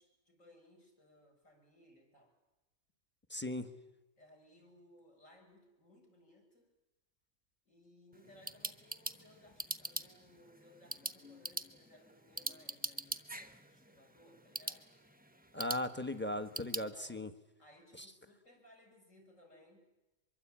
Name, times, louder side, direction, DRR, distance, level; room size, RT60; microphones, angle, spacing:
voice 1, 0.0-2.3 4.2-6.7 7.6-14.9 16.7-17.2 17.6-19.8, left 1 dB, 55° left, 3 dB, 6.7 m, -62 dB
voice 2, 3.3-3.7 15.5-17.3 18.0-18.1, left 1 dB, 10° left, 10 dB, 1.1 m, -38 dB
sound 1, 8.1-16.9, right 2 dB, 10° right, 0.7 m, -44 dB
23.5 x 23.0 x 8.8 m, 0.99 s
omnidirectional pair, 1.6 m